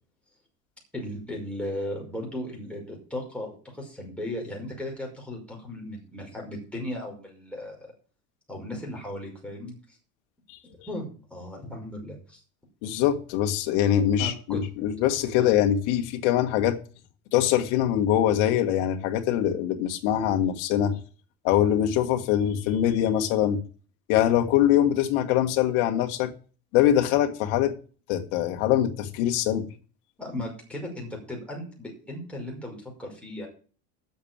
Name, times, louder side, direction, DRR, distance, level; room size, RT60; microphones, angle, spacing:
voice 1, 0.9-7.8 8.5-9.7 10.9-12.4 14.2-14.6 15.4-15.5 30.2-33.5, left 1 dB, 5° left, 5.6 m, -36 dB
voice 2, 12.8-16.8 17.3-21.0 21.4-23.6 24.1-26.3 26.7-27.7 28.1-29.7, left 11 dB, 70° left, 2.0 m, -23 dB
8.8 x 7.4 x 8.9 m
supercardioid pair, 120°, 34 cm